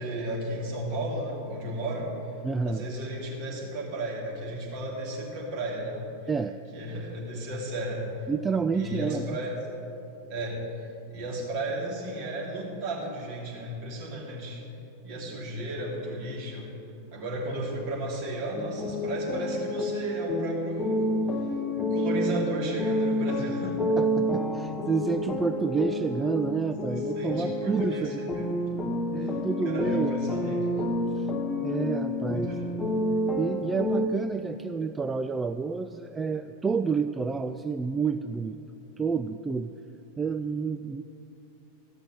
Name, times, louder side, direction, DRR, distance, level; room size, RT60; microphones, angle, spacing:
voice 1, 0.0-2.1 2.6-6.0 6.7-8.0 8.7-9.6 10.3-10.6 11.1-14.6 15.0-16.7 17.1-21.1 21.8-23.9 26.9-28.5 29.2-29.3 29.6-30.7 32.3-32.7, right 1 dB, 45° right, -3 dB, 2.9 m, -34 dB
voice 2, 2.4-2.8 6.3-6.6 8.3-9.4 24.0-28.3 29.1-30.6 31.2-31.3 31.6-32.5 33.4-38.6 39.0-39.7 40.2-41.0, right 5 dB, 15° right, 8 dB, 0.3 m, -29 dB
sound 1, 18.5-34.1, left 1 dB, 15° left, 0.8 m, -29 dB
14.0 x 6.1 x 8.4 m, 2.8 s
figure-of-eight pair, 90°, 0 cm